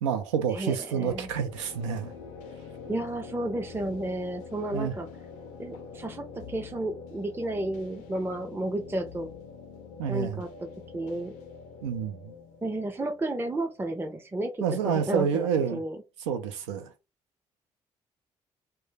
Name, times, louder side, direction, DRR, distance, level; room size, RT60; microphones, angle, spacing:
voice 1, 0.0-2.1 4.7-4.9 10.0-10.4 11.8-12.3 14.6-15.8 16.3-16.9, right 7 dB, 90° right, 0.4 m, -28 dB
voice 2, 0.5-1.3 2.9-5.1 5.6-9.3 10.1-10.7 10.9-11.3 12.6-16.0, right 1 dB, 15° right, 0.5 m, -32 dB
sound 1, 1.1-14.7, left 5 dB, 80° left, 0.4 m, -46 dB
2.2 x 2.1 x 3.1 m
hypercardioid pair, 45°, 15 cm